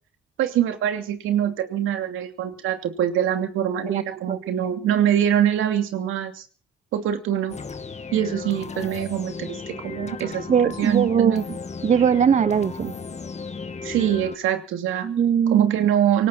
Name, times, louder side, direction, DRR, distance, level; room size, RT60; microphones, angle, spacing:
voice 1, 0.4-6.4 6.9-7.6 8.1-11.4 12.0-12.1 13.8-15.1 15.5-16.3, right 10 dB, 85° right, 2.9 m, -24 dB
voice 2, 3.9-4.6 10.5-11.4 11.8-12.9 15.0-15.7, right 7 dB, 35° right, 0.7 m, -21 dB
sound 1, 7.5-14.4, left 4 dB, 35° left, 1.9 m, -35 dB
19.0 x 17.5 x 4.3 m
cardioid pair, 90°, 20 cm